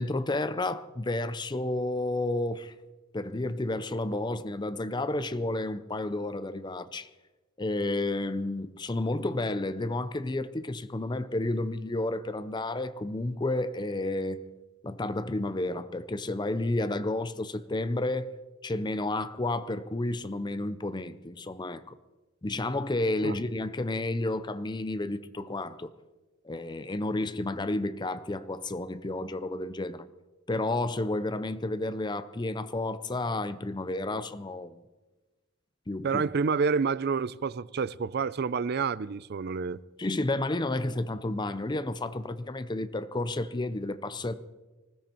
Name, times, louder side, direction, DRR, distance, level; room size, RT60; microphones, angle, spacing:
voice 1, 0.0-2.7 3.1-7.1 7.6-14.5 14.8-18.3 18.6-22.0 22.4-25.9 26.4-30.1 30.5-34.8 35.9-36.2 40.0-44.3, left 2 dB, 20° left, 0.6 m, -31 dB
voice 2, 36.0-39.8, right 5 dB, 50° right, 0.4 m, -28 dB
20.0 x 16.0 x 4.5 m
head